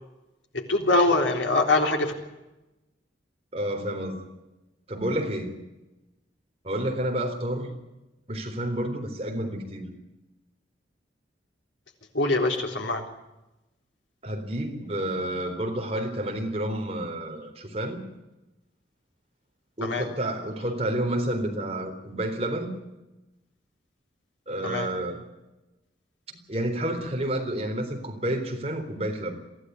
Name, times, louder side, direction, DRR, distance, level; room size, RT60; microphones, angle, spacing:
voice 1, 0.5-2.1 12.1-13.1 19.8-20.1 24.6-24.9, left 2 dB, 90° left, 3 dB, 3.7 m, -23 dB
voice 2, 3.5-4.3 4.9-5.6 6.6-7.8 8.3-9.9 14.2-18.0 19.8-22.7 24.5-25.2 26.5-29.3, right 1 dB, 35° right, 3 dB, 3.9 m, -30 dB
23.0 x 16.0 x 9.5 m, 1.0 s
head